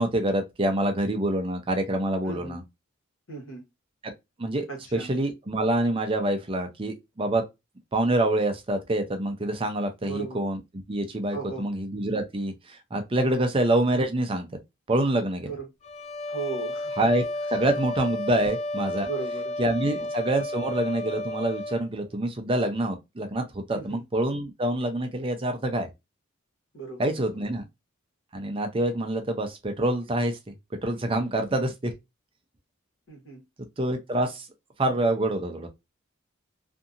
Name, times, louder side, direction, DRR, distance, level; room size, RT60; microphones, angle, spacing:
voice 1, 0.0-2.6 4.0-4.1 4.4-4.7 4.9-7.4 7.9-10.6 10.9-14.5 14.9-15.5 17.0-17.2 17.5-19.1 19.6-25.9 27.0-27.6 28.3-30.4 30.8-31.9 33.8-34.5 34.8-35.7, right 1 dB, 25° right, 0.5 m, -26 dB
voice 2, 2.2-2.6 3.3-3.6 4.7-5.1 10.0-10.4 11.3-11.7 15.4-15.7 16.3-16.9 19.1-19.5 19.8-20.1 23.7-24.0 26.7-27.4 31.2-31.3 33.1-33.4, right 4 dB, 65° left, 1.3 m, -37 dB
sound 1, 15.8-21.9, left 1 dB, 30° left, 0.3 m, -32 dB
2.7 x 2.6 x 2.4 m
head